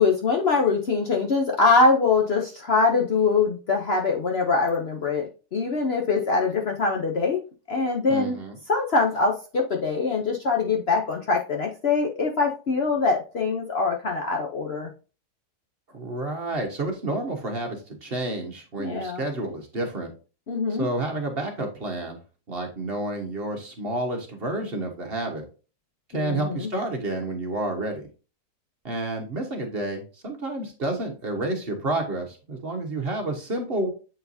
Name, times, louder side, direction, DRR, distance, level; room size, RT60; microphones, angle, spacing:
voice 1, 0.0-7.4 7.7-8.4 8.7-14.9 18.8-19.2 20.5-20.9 26.1-26.7, left 4 dB, 50° left, 1 dB, 0.8 m, -23 dB
voice 2, 8.1-8.6 15.9-20.1 20.8-22.2 22.5-25.4 26.1-28.0 28.8-33.9, right 2 dB, 40° right, 3 dB, 1.3 m, -30 dB
7.8 x 4.5 x 2.7 m, 0.34 s
omnidirectional pair, 1.6 m